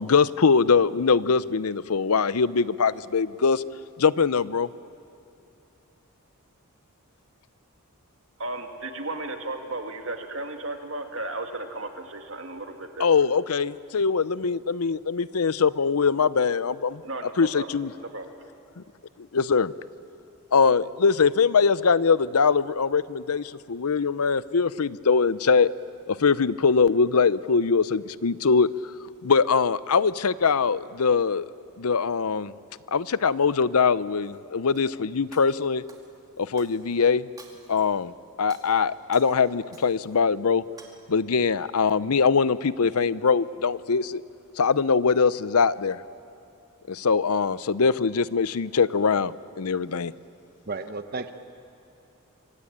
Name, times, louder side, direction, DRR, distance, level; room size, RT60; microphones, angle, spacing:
voice 1, 0.0-3.6 4.0-4.7 13.0-17.0 17.4-17.9 19.3-19.7 20.5-25.7 26.1-28.7 29.2-31.5 31.8-32.5 32.9-35.8 36.4-37.3 37.7-38.1 38.4-40.6 41.1-44.2 44.6-46.0 46.9-50.1, left 5 dB, 85° left, 17 dB, 0.7 m, -22 dB
voice 2, 8.4-13.1 17.0-17.7 18.0-18.3, right 2 dB, 60° right, 5 dB, 2.3 m, -34 dB
Shatter, 34.2-34.9 35.3-37.0 37.4-38.0 38.4-40.2 40.5-40.9, right 3 dB, 15° right, 2.5 m, -52 dB
voice 3, 50.7-51.3, right 3 dB, 45° right, 9 dB, 1.0 m, -33 dB
26.5 x 24.5 x 8.8 m, 2.8 s
head